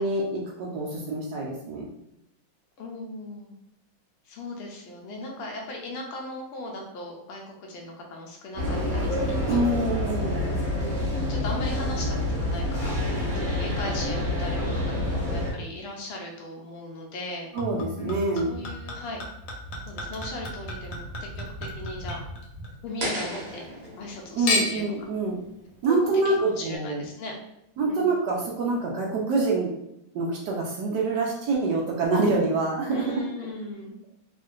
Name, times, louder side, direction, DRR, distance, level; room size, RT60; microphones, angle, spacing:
voice 1, 0.0-1.9 9.5-10.5 17.5-18.5 24.4-25.4 25.8-27.1 27.8-29.7 30.1-33.2, right 3 dB, 70° right, -2 dB, 1.1 m, -26 dB
voice 2, 2.8-3.5 4.2-9.6 10.5-13.0 13.3-17.5 18.0-18.2 18.4-19.2 19.9-21.4 21.7-22.2 22.8-23.6 24.0-24.9 25.9-26.0 26.2-27.3 27.9-28.1 32.9-34.0, left 2 dB, 90° left, 0 dB, 1.5 m, -38 dB
sound 1, 8.5-15.5, left 1 dB, 20° right, 1.1 m, -27 dB
Chink clink / Liquid, 17.6-23.1 23.4-24.1 24.5-25.0 25.7-25.8, left 2 dB, 75° left, 1.4 m, -33 dB
sound 2, 23.0-26.0, right 1 dB, 55° right, 1.2 m, -36 dB
3.6 x 2.5 x 2.4 m, 0.83 s
omnidirectional pair, 2.2 m